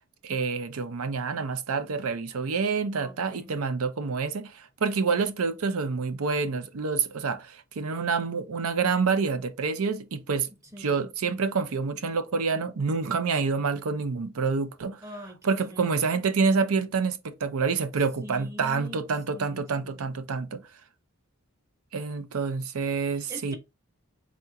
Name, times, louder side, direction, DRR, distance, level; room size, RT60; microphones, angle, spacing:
voice 1, 0.2-10.5 10.8-15.0 15.4-20.6 21.9-23.6, right 5 dB, 80° right, 0.6 m, -27 dB
voice 2, 3.0-3.5 10.6-11.0 15.0-16.1 18.2-19.0 19.3-20.1 23.1-23.6, equal, 15° right, 0.8 m, -44 dB
4.2 x 3.7 x 2.3 m
head